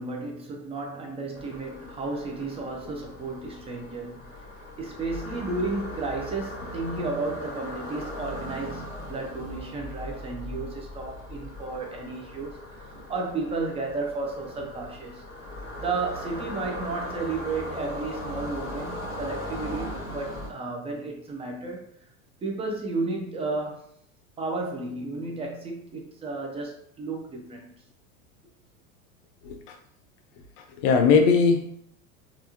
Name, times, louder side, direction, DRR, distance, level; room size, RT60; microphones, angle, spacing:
voice 1, 0.0-4.3 4.8-15.3 15.8-21.9 22.4-23.8 24.4-27.7, right 3 dB, 15° right, 0.5 m, -33 dB
sound 1, 1.3-20.5, left 1 dB, 20° left, 1.2 m, -39 dB
voice 2, 29.4-29.8 30.8-31.7, left 5 dB, 45° left, 0.6 m, -20 dB
3.3 x 2.5 x 2.8 m
figure-of-eight pair, 80°, 45 cm